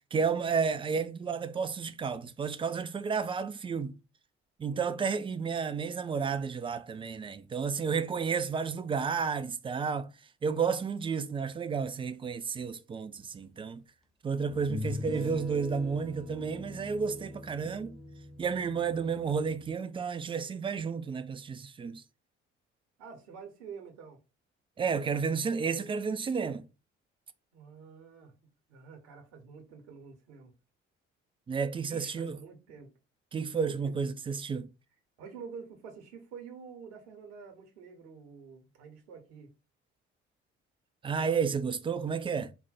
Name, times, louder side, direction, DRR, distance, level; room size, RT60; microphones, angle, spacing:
voice 1, 0.1-3.9 4.6-10.1 10.4-13.8 14.2-18.0 18.4-22.0 24.8-26.6 31.5-32.4 33.3-34.7 41.0-42.5, right 5 dB, 15° right, 0.3 m, -31 dB
sound 1, 13.4-13.5 14.5-19.7, left 2 dB, ahead, 0.7 m, -41 dB
voice 2, 23.0-24.2 27.5-28.3 28.7-30.5 31.9-32.9 33.6-34.1 35.2-39.5, right 6 dB, 70° right, 1.0 m, -48 dB
4.5 x 2.1 x 4.0 m
figure-of-eight pair, 45°, 35 cm